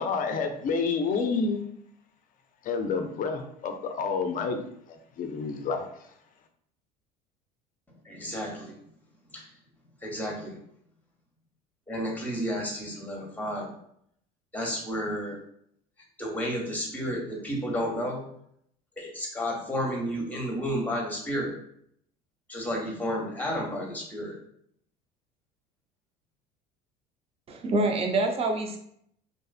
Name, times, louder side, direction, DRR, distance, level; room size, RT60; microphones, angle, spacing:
voice 1, 0.0-1.7 2.7-4.7 5.2-5.9, left 4 dB, 45° left, 6 dB, 0.5 m, -29 dB
voice 2, 8.0-8.7 9.3-9.5 10.0-10.6 11.9-13.7 14.5-15.4 16.2-18.2 19.0-21.5 22.5-24.4, equal, 10° left, -1 dB, 0.9 m, -31 dB
voice 3, 27.5-28.8, right 2 dB, 30° right, 4 dB, 0.5 m, -26 dB
2.5 x 2.4 x 2.4 m, 0.69 s
hypercardioid pair, 85°, 20 cm